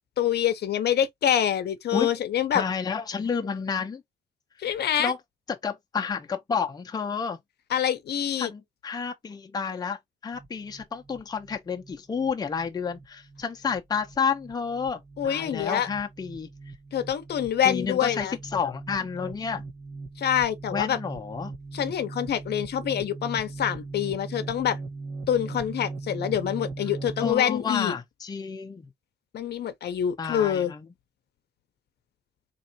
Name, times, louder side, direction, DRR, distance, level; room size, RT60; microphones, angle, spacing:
voice 1, 0.2-2.6 4.6-5.1 7.7-8.5 15.2-15.9 16.9-18.3 20.2-21.0 21.7-24.8 25.3-27.9 29.3-30.7, left 10 dB, 65° left, 0.7 m, -26 dB
voice 2, 1.9-2.2 2.5-4.0 5.0-5.2 5.5-7.4 8.4-16.5 17.6-19.6 20.7-21.5 27.2-28.9 30.2-30.9, left 6 dB, 20° left, 0.6 m, -30 dB
sound 1, 10.3-27.3, right 3 dB, 30° right, 1.3 m, -40 dB
4.2 x 3.0 x 2.7 m
wide cardioid pair, 160°, 19 cm